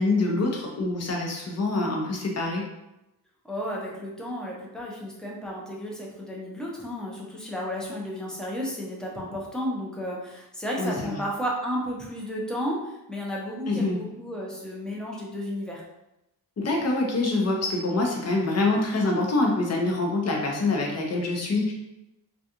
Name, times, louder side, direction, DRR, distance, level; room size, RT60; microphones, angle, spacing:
voice 1, 0.0-2.6 10.8-11.2 13.7-14.0 16.6-21.7, left 2 dB, 40° left, 0 dB, 0.7 m, -25 dB
voice 2, 3.4-15.8, equal, ahead, -3 dB, 0.6 m, -33 dB
2.4 x 2.3 x 2.8 m, 0.92 s
cardioid pair, 75°, 41 cm